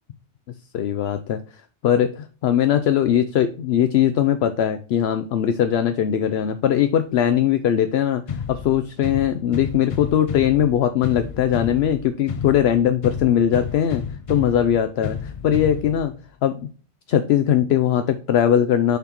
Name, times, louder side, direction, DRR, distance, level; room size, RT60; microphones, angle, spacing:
voice 1, 0.7-1.4 1.8-8.2 8.5-14.0 14.3-16.1 16.4-16.5 17.1-19.0, left 10 dB, 70° left, 9 dB, 0.8 m, -20 dB
sound 1, 8.3-16.3, left 7 dB, 45° left, 0.4 m, -31 dB
7.0 x 5.8 x 2.9 m, 0.38 s
omnidirectional pair, 1.1 m